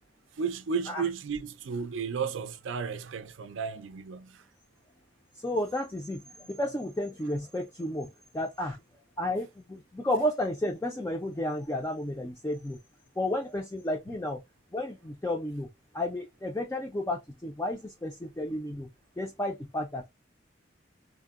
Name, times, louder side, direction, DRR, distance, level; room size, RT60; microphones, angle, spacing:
voice 1, 0.4-4.4, right 6 dB, 85° right, 0.5 m, -33 dB
voice 2, 5.4-8.8 9.2-12.8 13.2-14.4 14.7-15.7 15.9-18.9 19.2-20.1, left 1 dB, 15° left, 0.3 m, -32 dB
3.5 x 2.0 x 2.3 m
head